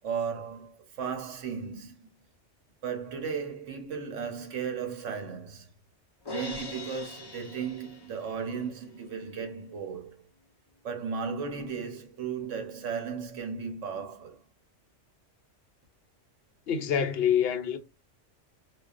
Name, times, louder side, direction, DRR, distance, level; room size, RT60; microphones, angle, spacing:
voice 1, 0.0-2.1 2.8-5.7 6.3-10.1 10.8-14.4, right 6 dB, 80° right, 1.2 m, -35 dB
Crash cymbal, 6.3-8.5, left 3 dB, 30° left, 0.5 m, -41 dB
voice 2, 16.7-17.8, left 8 dB, 65° left, 0.8 m, -26 dB
4.7 x 2.3 x 2.4 m
omnidirectional pair, 1.2 m